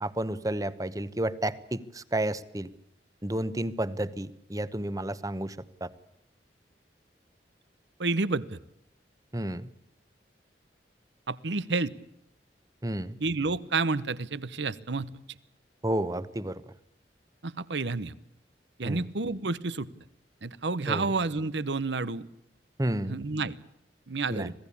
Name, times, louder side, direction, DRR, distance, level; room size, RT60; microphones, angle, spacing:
voice 1, 0.0-2.7 3.2-5.9 9.3-9.7 12.8-13.2 15.8-16.6 18.8-19.1 20.9-21.1 22.8-23.2 24.3-24.5, right 1 dB, 20° right, 16 dB, 1.0 m, -31 dB
voice 2, 8.0-8.6 11.3-11.9 13.2-15.1 17.4-18.1 18.8-19.9 20.4-22.3 23.1-23.5 24.1-24.5, right 3 dB, 85° right, 18 dB, 1.0 m, -30 dB
26.0 x 17.5 x 8.6 m, 0.79 s
head